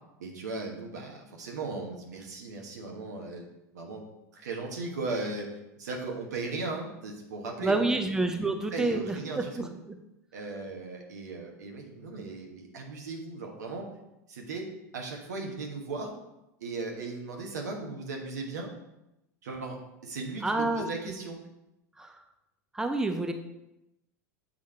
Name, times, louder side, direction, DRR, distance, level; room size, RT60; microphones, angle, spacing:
voice 1, 0.2-3.4 3.7-4.0 4.3-5.5 5.8-8.0 8.4-9.7 10.3-13.8 14.3-14.7 14.9-16.1 16.6-18.7 19.4-19.8 20.0-21.4, right 3 dB, 75° right, 1 dB, 1.3 m, -37 dB
voice 2, 7.6-10.0 20.4-21.1 22.0-22.1 22.7-23.3, right 2 dB, 5° right, 5 dB, 0.6 m, -29 dB
7.5 x 3.6 x 4.3 m, 0.90 s
hypercardioid pair, 85°, 9 cm